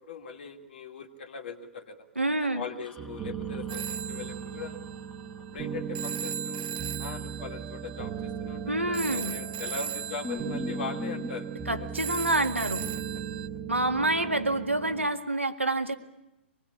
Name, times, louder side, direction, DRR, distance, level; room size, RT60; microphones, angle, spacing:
voice 1, 0.0-2.1 2.4-4.8 5.5-6.6 7.0-11.9 14.5-14.6, left 5 dB, 55° left, 2 dB, 2.6 m, -40 dB
voice 2, 2.2-2.6 8.7-9.4 11.7-12.8 13.7-16.0, right 2 dB, 90° right, 6 dB, 1.9 m, -27 dB
sound 1, 2.8-6.2 8.9-9.4 9.7-9.8 10.2-11.3, left 4 dB, 10° left, 2.0 m, -42 dB
sound 2, 3.0-15.1, right 7 dB, 20° right, 1.3 m, -38 dB
Telephone, 3.7-13.5, right 9 dB, 50° right, 0.8 m, -39 dB
25.0 x 20.5 x 8.5 m, 0.96 s
figure-of-eight pair, 115°, 7 cm